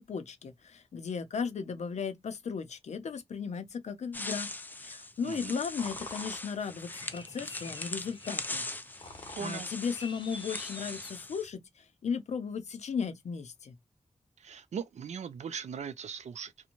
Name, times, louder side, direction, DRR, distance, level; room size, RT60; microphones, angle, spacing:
voice 1, 0.0-4.5 4.8-8.6 9.4-11.6 12.0-13.7, left 6 dB, 75° left, 0.5 m, -36 dB
sound 1, 4.1-11.5, left 2 dB, 15° left, 0.3 m, -40 dB
voice 2, 5.2-5.6 9.4-9.7 14.4-16.7, right 7 dB, 80° right, 0.4 m, -39 dB
sound 2, 5.3-11.5, left 2 dB, 45° left, 0.7 m, -48 dB
2.5 x 2.1 x 2.9 m
wide cardioid pair, 140°, 12 cm